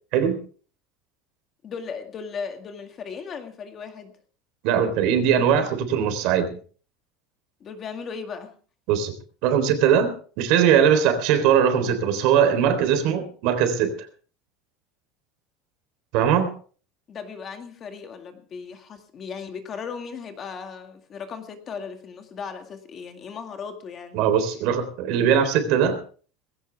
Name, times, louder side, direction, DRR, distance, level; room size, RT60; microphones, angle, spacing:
voice 1, 1.6-4.1 7.6-8.5 17.1-24.2, left 6 dB, 25° left, 6 dB, 2.0 m, -36 dB
voice 2, 4.6-6.5 8.9-9.1 9.4-10.1 10.4-13.9 16.1-16.5 24.1-26.0, right 8 dB, 50° right, 9 dB, 3.6 m, -20 dB
19.5 x 17.0 x 3.5 m, 0.41 s
cardioid pair, 180°, 0 cm